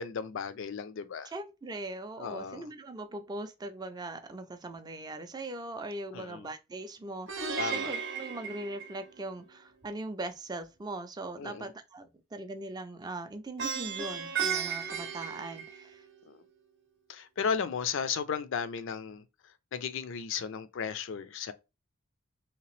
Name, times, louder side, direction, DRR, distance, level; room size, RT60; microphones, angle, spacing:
voice 1, 0.0-1.3 2.2-2.6 6.1-6.5 7.6-7.9 11.4-11.7 16.3-16.4 17.1-19.2 19.7-21.5, left 6 dB, 65° left, 0.4 m, -35 dB
voice 2, 1.2-16.1, right 2 dB, 20° right, 0.4 m, -40 dB
Plucked string instrument, 7.3-9.4 13.6-16.2, right 6 dB, 60° right, 0.7 m, -35 dB
3.2 x 2.9 x 3.1 m
head